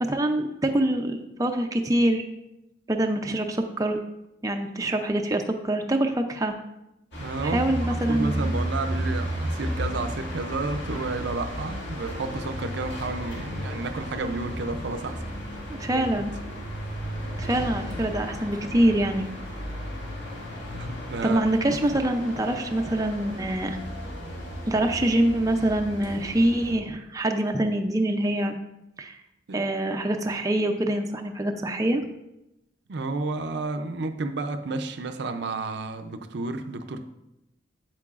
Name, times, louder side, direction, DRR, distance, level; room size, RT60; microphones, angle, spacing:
voice 1, 0.0-2.2 2.9-4.0 4.4-6.5 7.4-8.4 15.7-16.3 17.4-19.3 21.2-23.8 24.7-28.6 29.0-29.1 29.5-32.0, right 1 dB, 20° right, 4 dB, 0.4 m, -25 dB
sound 1, 7.1-26.7, equal, 70° left, 2.0 m, -34 dB
voice 2, 7.2-7.8 8.1-15.2 15.9-16.2 20.7-21.5 29.5-29.7 32.9-37.0, right 3 dB, 65° right, 7 dB, 0.5 m, -31 dB
8.5 x 7.6 x 2.4 m, 0.88 s
head